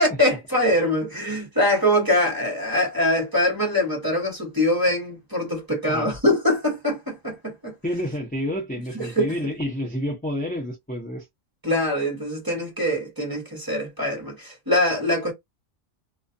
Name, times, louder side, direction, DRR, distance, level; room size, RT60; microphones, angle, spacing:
voice 1, 0.0-7.7 9.0-9.3 11.6-15.3, left 1 dB, 20° right, 0.9 m, -23 dB
voice 2, 7.8-11.3, equal, 10° left, 0.6 m, -29 dB
2.4 x 2.3 x 2.6 m
omnidirectional pair, 1.4 m